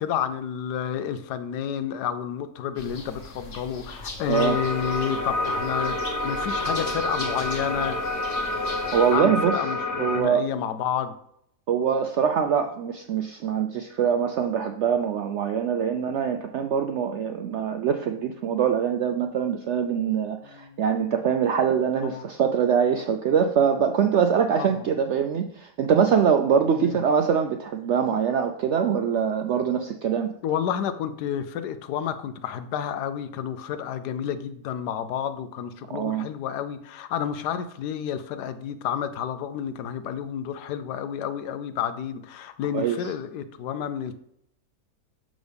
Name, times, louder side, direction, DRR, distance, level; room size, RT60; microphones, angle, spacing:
voice 1, 0.0-8.0 9.1-11.1 20.4-20.8 22.0-22.2 24.6-24.9 26.8-27.0 30.4-44.1, left 9 dB, 90° left, 11 dB, 1.2 m, -30 dB
sound 1, 2.8-9.2, left 2 dB, 50° left, 1.4 m, -39 dB
sound 2, 4.3-10.2, left 2 dB, 15° left, 0.8 m, -28 dB
voice 2, 8.9-9.6 10.0-10.5 11.7-30.3 35.9-36.3 42.7-43.0, right 7 dB, 75° right, 6 dB, 0.6 m, -23 dB
6.2 x 6.2 x 3.4 m, 0.72 s
omnidirectional pair, 1.7 m